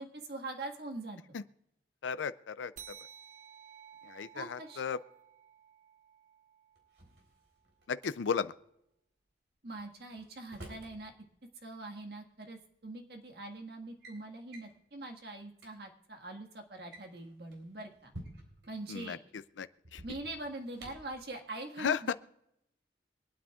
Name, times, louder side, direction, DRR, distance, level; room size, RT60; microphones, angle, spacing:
voice 1, 0.0-1.2 4.3-4.8 9.6-11.1 11.6-18.1 18.7-19.2 20.0-22.1, right 2 dB, 60° right, 3 dB, 1.7 m, -43 dB
voice 2, 2.0-2.9 4.0-5.0 7.9-8.5 18.9-20.0 21.8-22.1, left 6 dB, 85° left, 14 dB, 0.4 m, -35 dB
sound 1, 2.8-7.7, right 8 dB, 40° right, 0.6 m, -55 dB
Drawer open or close, 6.8-8.1 9.8-11.0 12.2-12.3 13.2-13.4 13.7-14.2 14.5-14.8 15.3-15.4 15.5-15.7 16.7-18.7 19.8-21.2, right 1 dB, 75° right, 3.8 m, -51 dB
25.0 x 9.4 x 2.4 m, 0.81 s
head